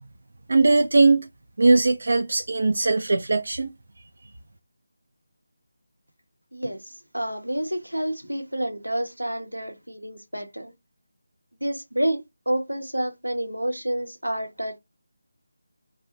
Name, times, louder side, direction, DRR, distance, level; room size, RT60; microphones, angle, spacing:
voice 1, 0.5-1.3 1.6-3.7, right 3 dB, 55° right, 0.3 m, -19 dB
voice 2, 6.5-10.7 11.6-14.8, right 1 dB, 90° right, 0.7 m, -29 dB
2.5 x 2.0 x 2.7 m
figure-of-eight pair, 160°, 0 cm